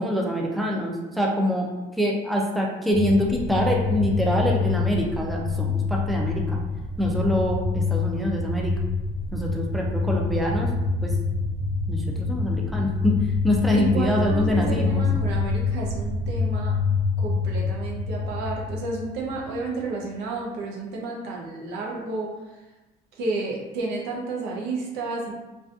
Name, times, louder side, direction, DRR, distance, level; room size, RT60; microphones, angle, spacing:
voice 1, 0.0-1.7 2.0-6.6 7.0-8.7 9.3-10.7 11.0-11.1 11.9-13.2 13.4-15.0, equal, ahead, -1 dB, 0.4 m, -25 dB
sound 1, 2.9-19.7, left 4 dB, 50° right, 1.3 m, -26 dB
voice 2, 13.7-16.7 17.2-22.3 23.2-25.4, right 3 dB, 90° right, -2 dB, 0.6 m, -31 dB
2.4 x 2.4 x 2.4 m, 1.1 s
cardioid pair, 110°, 17 cm